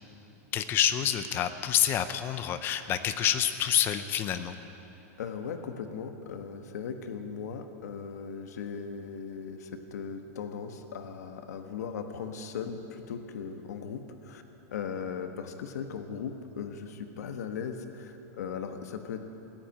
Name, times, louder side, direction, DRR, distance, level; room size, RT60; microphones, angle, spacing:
voice 1, 0.5-4.6, left 10 dB, 25° left, 11 dB, 0.5 m, -27 dB
voice 2, 5.2-14.4 14.7-19.3, left 6 dB, 90° left, 7 dB, 1.3 m, -38 dB
16.0 x 10.0 x 9.0 m, 3.0 s
supercardioid pair, 160°, 9 cm